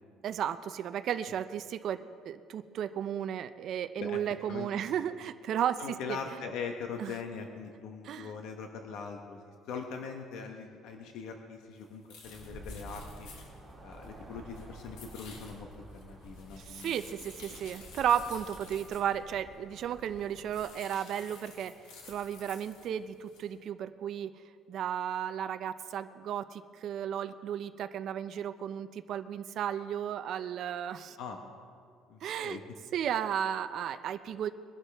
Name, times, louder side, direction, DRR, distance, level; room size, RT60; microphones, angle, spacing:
voice 1, 0.2-5.8 6.1-6.2 7.0-7.1 8.0-8.3 16.6-24.3 24.7-31.2 32.2-32.6 32.9-34.5, right 9 dB, 50° right, 10 dB, 0.5 m, -34 dB
voice 2, 4.5-4.9 5.8-13.3 13.8-15.7 15.9-17.0 31.2-31.5 32.1-32.6, left 5 dB, 70° left, 4 dB, 1.0 m, -41 dB
sound 1, 11.8-11.9 12.1-14.2 14.5-19.1 19.8-19.9 20.2-22.9 23.3-23.5, left 4 dB, 90° left, 3.0 m, -52 dB
sound 2, 12.2-20.7, right 1 dB, ahead, 2.3 m, -50 dB
22.0 x 11.5 x 3.5 m, 2.3 s
cardioid pair, 150°, 0 cm